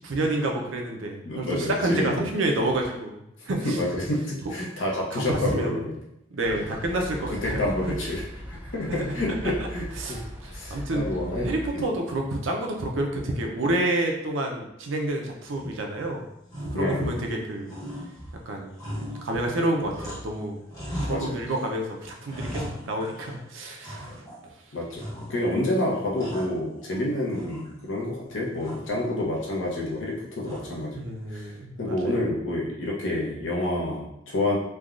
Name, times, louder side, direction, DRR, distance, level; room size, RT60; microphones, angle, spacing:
voice 1, 0.0-3.8 4.4-4.5 5.1-5.8 6.3-7.6 8.9-9.2 10.0-10.2 10.4-11.1 11.3-16.2 16.7-17.7 18.5-18.7 19.2-20.6 21.0-24.2 31.0-32.0, right 1 dB, 85° right, 2 dB, 0.5 m, -29 dB
voice 2, 1.2-2.3 3.6-5.9 6.5-6.7 7.4-8.2 8.7-10.2 10.5-11.8 16.7-17.2 21.1-21.4 24.7-25.0 25.3-31.0 31.3-31.5 31.8-34.6, left 1 dB, 80° left, -3 dB, 0.8 m, -28 dB
sound 1, 6.4-11.7, equal, 10° right, 0.4 m, -38 dB
sound 2, 15.5-16.1 16.5-17.4 17.7-20.4 20.7-21.7 22.0-23.4 23.8-24.5 25.0-25.6 25.9-27.0 27.3-28.0 28.6-29.0 30.4-30.9, equal, 20° left, 1.0 m, -38 dB
3.4 x 2.2 x 2.4 m, 0.80 s
head